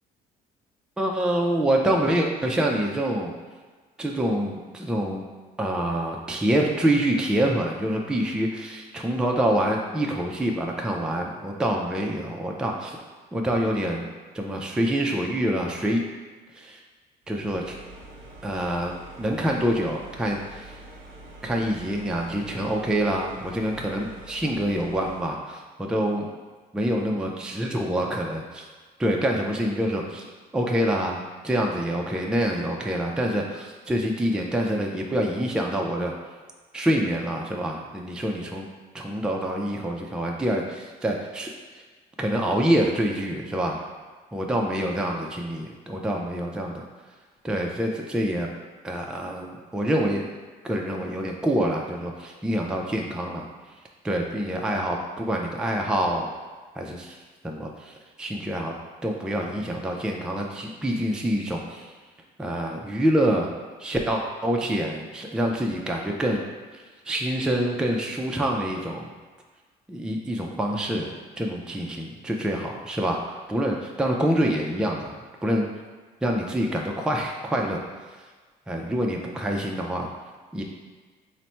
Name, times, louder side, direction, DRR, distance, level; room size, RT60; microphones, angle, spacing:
voice 1, 1.0-3.3 4.0-5.2 5.6-13.0 13.3-14.1 14.3-16.0 16.6-16.8 17.3-17.8 18.4-20.7 21.4-26.3 26.7-28.6 29.0-30.2 30.5-36.1 36.7-38.7 38.9-41.5 42.2-43.8 44.3-46.8 47.4-48.5 48.8-50.3 50.6-53.5 54.0-56.3 56.8-57.2 57.4-58.7 59.0-61.9 62.4-63.5 63.8-66.4 66.7-69.1 69.9-73.2 73.5-75.1 75.4-75.7 76.2-77.8 78.7-80.1 80.5-80.6, right 1 dB, 5° right, 0 dB, 0.4 m, -26 dB
sound 1, 17.3-25.4, right 1 dB, 55° right, 0.9 m, -45 dB
4.0 x 2.1 x 4.3 m, 1.4 s
cardioid pair, 110°, 17 cm